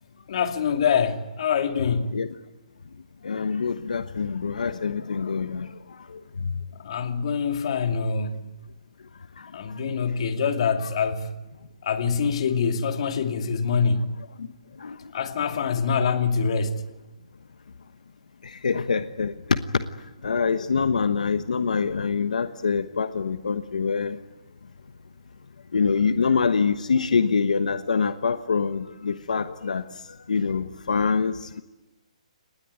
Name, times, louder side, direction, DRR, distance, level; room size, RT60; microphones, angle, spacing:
voice 1, 0.3-2.2 6.8-8.4 9.5-11.3 11.8-14.1 15.1-16.8, left 6 dB, 50° left, 2.5 m, -25 dB
voice 2, 3.2-5.7 10.8-10.9 14.8-15.0 18.6-19.3 20.2-24.2 25.7-29.8 30.3-31.6, left 5 dB, 90° left, 1.1 m, -25 dB
26.5 x 20.0 x 9.5 m
hypercardioid pair, 160°, 4 cm